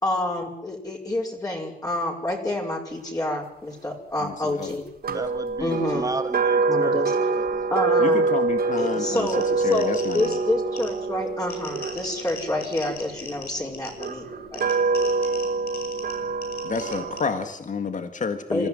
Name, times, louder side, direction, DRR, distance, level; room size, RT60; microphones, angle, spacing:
voice 1, 0.0-4.9 5.6-6.1 6.7-7.1 7.7-8.3 8.8-14.3 14.5-14.6 18.5-18.7, left 1 dB, 25° left, -2 dB, 5.4 m, -28 dB
voice 2, 4.2-4.7 5.1-5.2 8.0-9.3 9.6-10.3 16.6-18.7, left 5 dB, 55° left, 8 dB, 1.9 m, -30 dB
sound 1, 5.0-13.2 13.9-17.4, right 4 dB, 80° right, 4.0 m, -25 dB
voice 3, 5.1-7.6, right 2 dB, 20° right, 7 dB, 2.4 m, -34 dB
sound 2, 9.0-17.2, left 5 dB, 85° left, 7.6 m, -41 dB
26.5 x 15.5 x 9.8 m, 0.78 s
wide cardioid pair, 115°, 16 cm